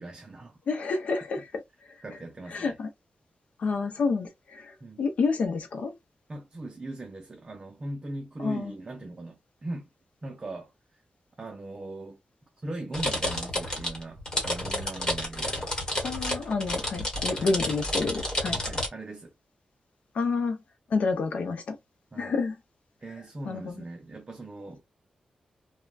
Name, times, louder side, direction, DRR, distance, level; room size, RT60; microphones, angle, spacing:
voice 1, 0.0-0.6 1.4-1.5 2.0-2.8 4.8-5.0 6.3-9.9 10.2-10.7 11.4-12.2 12.6-15.7 17.4-17.5 18.6-19.3 22.1-22.3 23.0-24.8, right 2 dB, 30° right, 0.5 m, -39 dB
voice 2, 0.7-1.5 2.5-2.9 3.6-5.9 8.4-8.7 16.0-18.6 20.1-20.6 20.9-21.8 22.2-22.6 23.5-23.8, left 4 dB, 70° left, 0.6 m, -29 dB
sound 1, 12.9-18.9, left 1 dB, 30° left, 1.3 m, -30 dB
3.2 x 2.2 x 2.4 m
wide cardioid pair, 160°, 2 cm